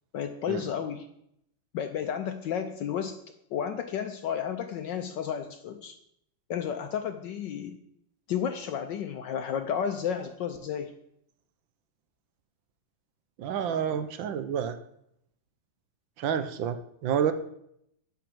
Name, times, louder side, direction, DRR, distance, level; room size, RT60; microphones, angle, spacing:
voice 1, 0.1-1.1 1.7-3.2 3.5-6.0 6.5-7.8 8.3-10.9, left 8 dB, 70° left, 7 dB, 1.2 m, -32 dB
voice 2, 13.4-14.8 16.2-17.3, right 8 dB, 70° right, 10 dB, 1.4 m, -29 dB
9.2 x 4.7 x 7.7 m, 0.74 s
omnidirectional pair, 2.3 m